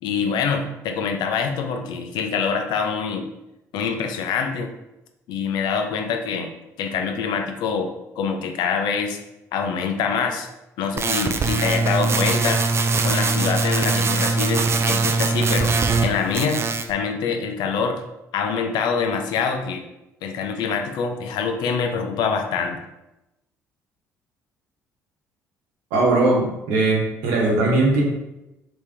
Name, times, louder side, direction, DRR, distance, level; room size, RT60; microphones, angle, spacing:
voice 1, 0.0-3.2 3.7-4.7 5.3-6.5 6.8-9.2 9.5-10.5 10.8-12.6 13.0-15.7 16.0-18.0 18.3-19.8 20.2-22.8, left 6 dB, 70° left, 5 dB, 0.5 m, -25 dB
sound 1, 11.0-16.1 16.3-16.9, right 4 dB, 35° right, 0.4 m, -21 dB
voice 2, 25.9-28.0, right 2 dB, 80° right, -2 dB, 1.0 m, -19 dB
3.6 x 3.0 x 3.3 m, 0.93 s
hypercardioid pair, 55°, 8 cm